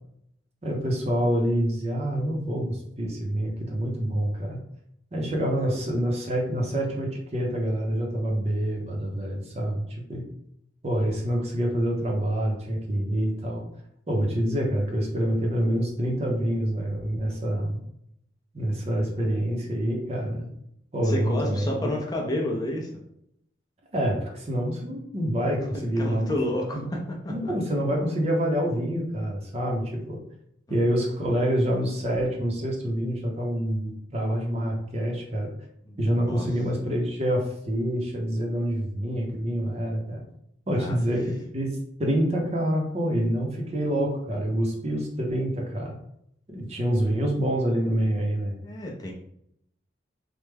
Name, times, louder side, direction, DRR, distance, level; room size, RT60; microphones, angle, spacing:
voice 1, 0.6-4.6 5.1-10.2 10.8-13.6 14.1-17.8 18.5-20.5 20.9-21.9 23.9-26.3 26.7-26.9 27.3-30.2 30.7-35.5 36.0-40.2 40.7-46.0 46.5-48.6, equal, 35° right, 0 dB, 0.6 m, -27 dB
voice 2, 21.0-22.9 26.0-27.0 27.2-27.3 30.7-30.8 35.8-36.4 40.7-41.0 48.6-49.1, left 1 dB, 20° left, -2 dB, 0.5 m, -30 dB
3.2 x 2.1 x 3.3 m, 0.74 s
head